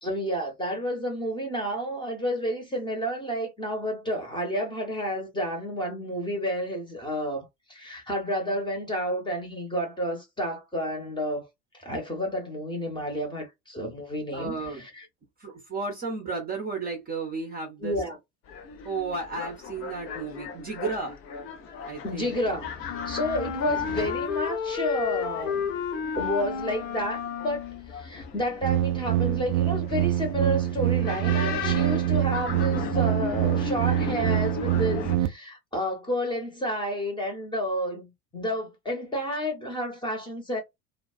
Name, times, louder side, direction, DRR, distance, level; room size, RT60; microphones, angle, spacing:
voice 1, 0.0-11.5 11.8-15.0 17.8-18.2 22.0-22.7 23.1-25.7 26.1-40.6, equal, 10° left, 0.9 m, -30 dB
voice 2, 14.3-14.8 15.4-18.0 18.8-21.2 21.9-22.3 23.6-23.8, right 4 dB, 20° right, 0.8 m, -33 dB
sound 1, 18.5-35.2, left 5 dB, 30° left, 0.5 m, -37 dB
Wind instrument woodwind instrument, 22.9-27.9, left 7 dB, 55° left, 1.0 m, -31 dB
sound 2, 28.6-35.3, right 13 dB, 40° right, 0.4 m, -25 dB
2.3 x 2.2 x 2.4 m
figure-of-eight pair, 75°, 47 cm